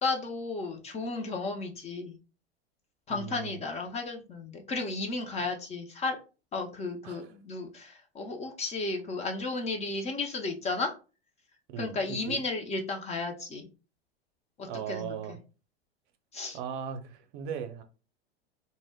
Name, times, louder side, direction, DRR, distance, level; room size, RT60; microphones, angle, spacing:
voice 1, 0.0-2.2 3.1-6.2 6.5-10.9 11.8-13.7 14.6-15.1 16.3-16.6, left 3 dB, 20° left, 0.5 m, -33 dB
voice 2, 3.1-3.6 7.0-7.3 11.7-12.4 14.6-15.4 16.5-17.8, right 8 dB, 50° right, 0.6 m, -38 dB
2.1 x 2.1 x 3.4 m
hypercardioid pair, 100°, 32 cm